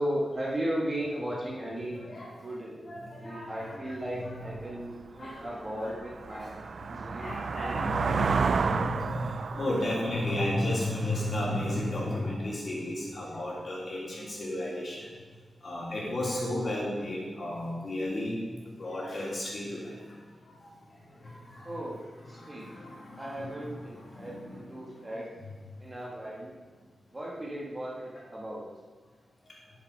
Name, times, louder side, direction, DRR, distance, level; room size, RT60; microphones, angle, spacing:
voice 1, 0.0-2.1 2.4-6.5 6.9-8.5 21.6-22.7 23.2-25.3 25.8-26.5 27.1-28.7, right 1 dB, 20° right, -4 dB, 1.6 m, -36 dB
voice 2, 1.9-2.3 2.8-3.9 4.6-4.7 5.1-5.6 5.8-5.9 6.3-6.5 7.2-15.0 15.6-18.4 18.8-20.0 20.6-20.7 21.2-21.7 22.3-24.6 25.0-25.1, left 1 dB, 40° left, -5 dB, 3.5 m, -33 dB
sound 1, 4.6-4.7 5.2-11.8, right 5 dB, 55° right, 0.4 m, -32 dB
11.5 x 7.2 x 5.4 m, 1.5 s
wide cardioid pair, 150°, 0 cm